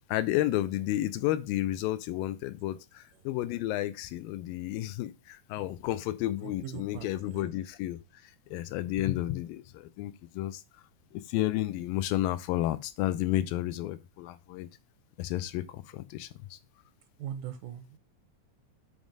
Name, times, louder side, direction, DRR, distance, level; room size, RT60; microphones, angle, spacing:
voice 1, 0.1-10.6 11.1-14.7 15.2-16.6, left 14 dB, 85° left, 2.2 m, -32 dB
voice 2, 6.6-7.4 17.2-17.9, right 10 dB, 80° right, 2.1 m, -40 dB
7.2 x 3.2 x 5.2 m
omnidirectional pair, 4.1 m